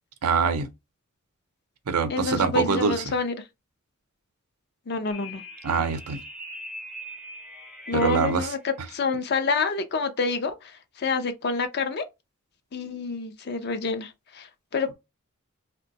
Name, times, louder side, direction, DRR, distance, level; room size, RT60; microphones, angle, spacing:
voice 1, 0.2-0.7 1.9-3.0 5.6-6.2 7.9-8.5, right 5 dB, 90° right, 0.6 m, -24 dB
voice 2, 2.1-3.3 4.9-5.4 7.9-12.1 12.7-14.9, left 4 dB, 45° left, 0.5 m, -28 dB
sound 1, 5.1-8.6, equal, 5° right, 0.5 m, -41 dB
2.6 x 2.2 x 3.8 m
head